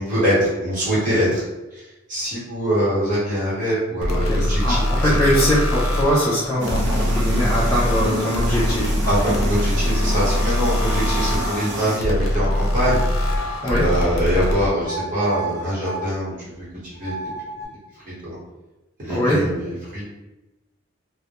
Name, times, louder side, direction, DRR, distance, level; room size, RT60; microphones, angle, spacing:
voice 1, 0.0-1.4 2.1-4.9 5.3-5.4 9.1-13.0 13.8-16.6 17.0-17.1 18.2-18.4 19.0-20.0, equal, 40° right, -8 dB, 1.1 m, -23 dB
sound 1, 4.0-14.7, left 1 dB, 80° left, 0.5 m, -22 dB
voice 2, 4.2-8.9 13.6-13.9 19.1-19.5, equal, 15° left, -7 dB, 0.3 m, -21 dB
sound 2, 6.6-12.0, right 1 dB, 60° right, 0.6 m, -30 dB
sound 3, 10.1-14.5 14.8-16.1 16.9-17.7, right 3 dB, 15° right, 0.7 m, -34 dB
2.1 x 2.0 x 2.8 m, 1.0 s
head